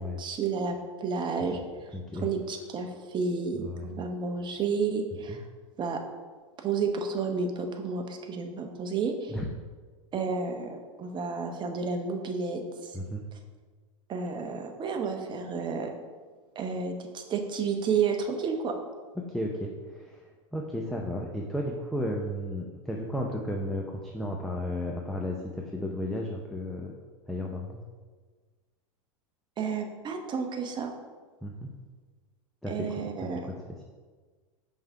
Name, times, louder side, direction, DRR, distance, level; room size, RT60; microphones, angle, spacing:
voice 1, 0.2-1.6 2.2-5.4 5.8-6.0 6.6-9.4 10.1-13.0 14.1-15.9 16.5-18.7 29.6-30.9 32.7-33.4, right 5 dB, 25° right, 4 dB, 0.8 m, -31 dB
voice 2, 1.9-2.3 3.6-4.0 5.3-5.4 9.3-9.5 12.9-13.2 19.2-26.9 27.3-27.8 31.4-31.7 32.6-33.6, left 1 dB, ahead, 0 dB, 0.6 m, -34 dB
5.6 x 3.6 x 5.4 m, 1.4 s
hypercardioid pair, 110°, 17 cm